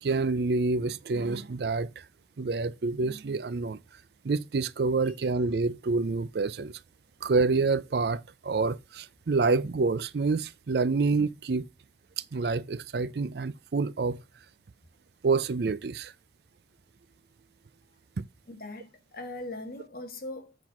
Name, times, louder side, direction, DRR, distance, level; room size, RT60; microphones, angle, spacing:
voice 1, 0.0-2.0 2.4-3.8 4.2-6.8 7.2-11.7 12.2-14.2 15.2-16.1, right 4 dB, 60° right, 0.5 m, -27 dB
voice 2, 18.5-20.6, left 2 dB, 55° left, 1.6 m, -40 dB
7.8 x 4.5 x 5.7 m
head